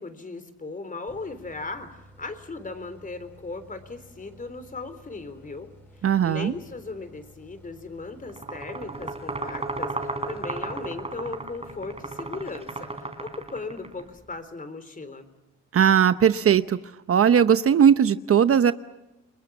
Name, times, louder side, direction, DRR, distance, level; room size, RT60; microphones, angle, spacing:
voice 1, 0.0-5.7 6.0-15.3, left 3 dB, 25° left, 11 dB, 3.8 m, -37 dB
sound 1, 1.1-12.7, equal, 5° left, 5.6 m, -53 dB
voice 2, 6.0-6.5 15.7-16.8 17.1-18.7, right 8 dB, 50° right, 12 dB, 0.9 m, -18 dB
sound 2, 8.3-14.0, right 2 dB, 20° right, 4.1 m, -34 dB
30.0 x 22.0 x 7.2 m, 0.97 s
cardioid pair, 90°, 30 cm